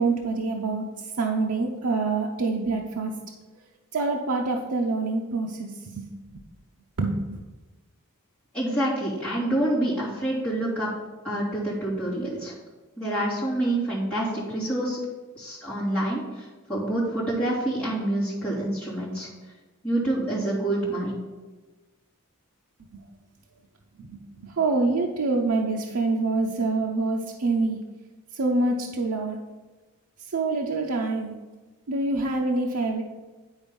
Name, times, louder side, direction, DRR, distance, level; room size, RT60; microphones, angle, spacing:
voice 1, 0.0-3.1 3.9-6.1 6.3-6.4 7.0-7.4 24.0-27.8 28.3-29.4 30.2-31.4 31.9-33.0, right 3 dB, 75° right, 0 dB, 0.7 m, -26 dB
voice 2, 8.5-10.9 11.2-12.5 13.0-15.0 15.3-19.3 19.8-21.2, right 1 dB, 5° left, -10 dB, 3.0 m, -27 dB
10.0 x 4.3 x 5.3 m, 1.2 s
head